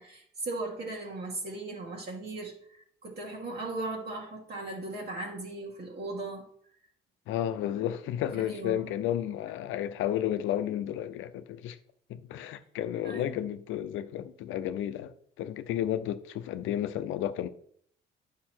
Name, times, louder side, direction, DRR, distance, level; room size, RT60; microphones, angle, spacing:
voice 1, 0.0-2.6 3.0-6.4 8.3-8.9 13.0-13.3, right 2 dB, 55° right, 2.0 m, -37 dB
voice 2, 7.3-11.8 12.1-17.5, left 11 dB, 90° left, 0.6 m, -32 dB
9.5 x 5.6 x 4.4 m
cardioid pair, 90°, 20 cm